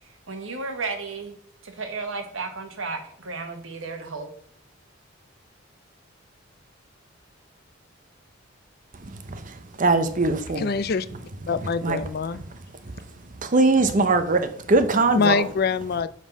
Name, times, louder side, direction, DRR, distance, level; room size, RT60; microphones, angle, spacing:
voice 1, 0.3-1.3 1.6-4.3, right 4 dB, 85° right, 6 dB, 1.3 m, -33 dB
voice 2, 9.3-10.7 11.8-12.0 13.4-15.3, right 3 dB, 40° right, 9 dB, 0.7 m, -21 dB
voice 3, 10.6-11.1 11.5-12.4 15.1-16.1, left 5 dB, 50° left, 14 dB, 0.4 m, -24 dB
5.4 x 5.2 x 5.3 m, 0.64 s
head